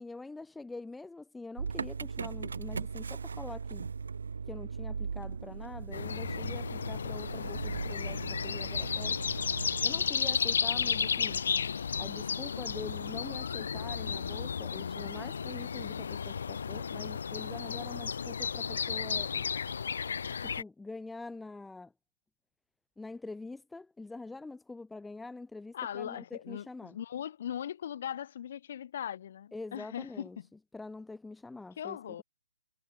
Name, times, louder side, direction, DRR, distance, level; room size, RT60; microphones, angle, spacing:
voice 1, 0.0-3.9 4.5-9.2 9.8-11.5 12.0-19.5 20.4-21.9 23.0-27.0 29.5-30.4 30.7-32.2, left 3 dB, 5° left, 0.5 m, -45 dB
Motor vehicle (road) / Engine starting, 1.6-9.9, right 5 dB, 80° right, 0.5 m, -38 dB
sound 1, 5.9-20.6, left 6 dB, 65° left, 0.5 m, -33 dB
voice 2, 25.7-30.5 31.8-32.2, left 10 dB, 45° left, 1.2 m, -39 dB
hypercardioid pair, 165°, 0 cm